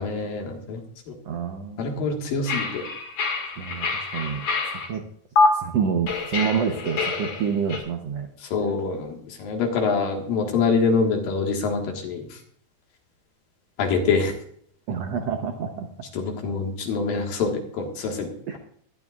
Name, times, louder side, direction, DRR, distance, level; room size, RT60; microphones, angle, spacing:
voice 1, 0.0-1.2 1.8-2.8 8.5-12.4 13.8-14.3 16.1-18.6, left 4 dB, 70° left, 2 dB, 3.3 m, -25 dB
voice 2, 1.2-2.1 3.6-4.4 4.9-5.0 5.5-8.3 14.9-15.9 18.5-18.6, right 7 dB, 75° right, 4 dB, 1.4 m, -27 dB
sound 1, 2.5-4.9 5.4-5.5 6.1-7.8, left 4 dB, 50° left, 2.8 m, -26 dB
19.5 x 12.0 x 2.4 m, 0.63 s
omnidirectional pair, 4.2 m